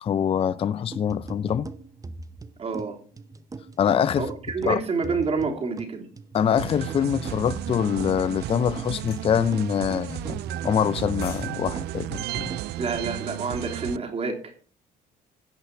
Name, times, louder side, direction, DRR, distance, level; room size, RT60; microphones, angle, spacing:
voice 1, 0.0-1.7 3.8-4.3 4.7-4.8 6.3-10.4 10.6-12.5, left 8 dB, 35° left, 0.5 m, -24 dB
sound 1, 0.9-12.9, right 3 dB, 20° right, 0.8 m, -41 dB
voice 2, 2.6-3.0 4.2-6.1 12.8-14.5, right 4 dB, 35° right, 3.3 m, -28 dB
sound 2, 6.6-14.0, right 16 dB, 75° right, 0.5 m, -34 dB
sound 3, 9.1-9.3 10.9-11.5 11.8-12.0, left 7 dB, 65° left, 5.9 m, -42 dB
16.5 x 5.6 x 5.9 m
cardioid pair, 110°, 17 cm